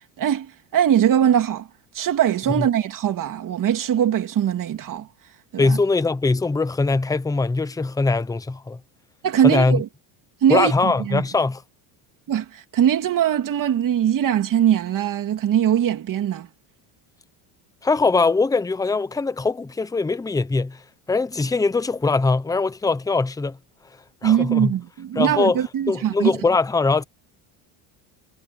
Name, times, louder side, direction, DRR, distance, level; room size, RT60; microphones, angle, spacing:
voice 1, 0.2-1.7 1.9-5.1 5.5-5.8 9.2-9.9 10.4-11.2 12.3-16.5 24.2-26.3, right 10 dB, 45° right, 3.0 m, -21 dB
voice 2, 5.6-8.8 9.4-9.8 10.5-11.6 17.8-20.8 21.1-23.6 24.2-24.7 25.2-27.0, left 3 dB, 10° left, 0.8 m, -21 dB
cardioid pair, 135°, 46 cm